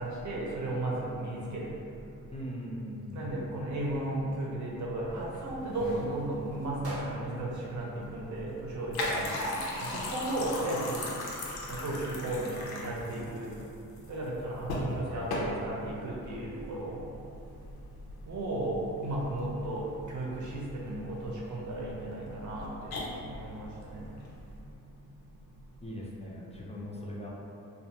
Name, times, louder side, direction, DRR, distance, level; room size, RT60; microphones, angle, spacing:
voice 1, 0.0-1.7 3.1-9.2 9.9-11.0 11.7-13.5 14.1-17.0 18.3-22.9 23.2-24.1, right 1 dB, 50° right, -4 dB, 0.7 m, -34 dB
voice 2, 2.3-3.6 9.1-9.4 25.8-27.3, equal, 20° left, -4 dB, 0.4 m, -40 dB
sound 1, 5.1-24.6, left 1 dB, 90° left, 0.5 m, -39 dB
sound 2, 6.8-9.0, right 1 dB, 85° right, 0.6 m, -48 dB
2.4 x 2.4 x 2.8 m, 2.7 s
cardioid pair, 75°, 37 cm